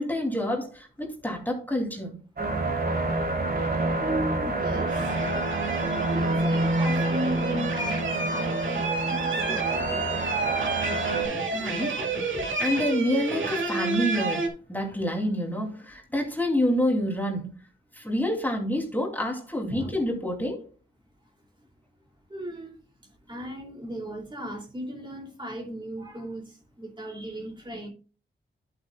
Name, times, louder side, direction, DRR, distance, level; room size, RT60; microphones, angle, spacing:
voice 1, 0.0-2.2 9.5-10.2 11.5-17.5 17.9-20.6, equal, 10° left, 2.7 m, -28 dB
sound 1, 2.4-11.2, right 2 dB, 45° right, 3.0 m, -27 dB
voice 2, 4.0-5.0 6.0-9.7 19.7-20.1 22.3-22.7 23.3-26.5 26.8-27.9, equal, 20° right, 2.6 m, -35 dB
sound 2, 4.9-14.5, right 4 dB, 65° right, 2.4 m, -30 dB
11.5 x 8.1 x 2.3 m
cardioid pair, 90°, 21 cm